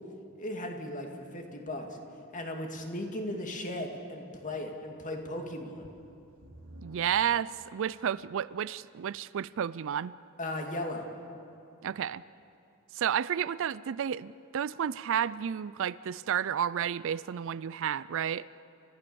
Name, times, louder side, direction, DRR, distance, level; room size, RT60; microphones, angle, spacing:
voice 1, 0.4-2.0 2.3-5.9 10.4-11.1, left 1 dB, 35° left, 3 dB, 2.3 m, -37 dB
sound 1, 5.8-8.2 8.9-9.0 9.6-9.7, right 1 dB, 80° right, 3.3 m, -53 dB
voice 2, 6.8-10.1 11.8-12.2 12.9-18.5, right 9 dB, 60° right, 19 dB, 0.4 m, -31 dB
29.0 x 15.0 x 7.0 m, 2.7 s
head